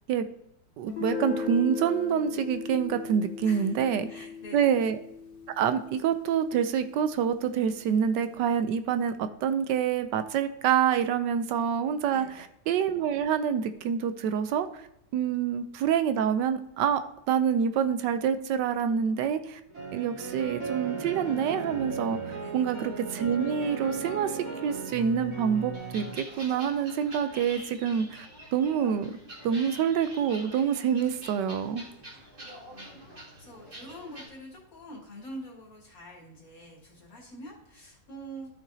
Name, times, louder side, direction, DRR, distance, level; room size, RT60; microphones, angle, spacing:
voice 1, 0.8-4.1 4.5-5.0 5.6-14.8 15.1-17.0 17.3-19.6 19.9-28.3 28.5-29.2 29.4-31.8, right 8 dB, 75° right, 10 dB, 1.2 m, -27 dB
Guitar, 0.9-6.4, left 5 dB, 90° left, 2.5 m, -37 dB
voice 2, 3.4-3.8 4.1-4.7 12.1-12.4 22.4-22.6 31.9-38.5, equal, 50° left, -3 dB, 2.8 m, -46 dB
sound 1, 19.7-26.1, right 4 dB, 50° right, 2.6 m, -36 dB
sound 2, 25.7-34.3, equal, 30° right, 2.1 m, -46 dB
13.5 x 6.0 x 2.7 m, 0.79 s
omnidirectional pair, 1.9 m